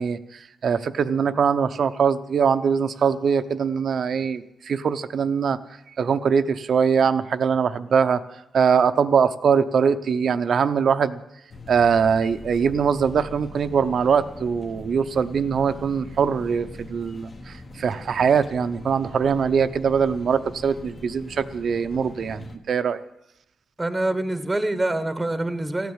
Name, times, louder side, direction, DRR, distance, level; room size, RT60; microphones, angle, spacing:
voice 1, 0.0-5.6 6.0-8.2 8.5-11.2 11.7-23.0, right 6 dB, 60° right, 11 dB, 0.7 m, -22 dB
sound 1, 11.5-22.6, left 2 dB, 35° left, 1.3 m, -42 dB
voice 2, 23.8-25.9, right 1 dB, 10° right, 11 dB, 1.0 m, -25 dB
15.0 x 9.5 x 8.8 m, 0.86 s
cardioid pair, 115°, 0 cm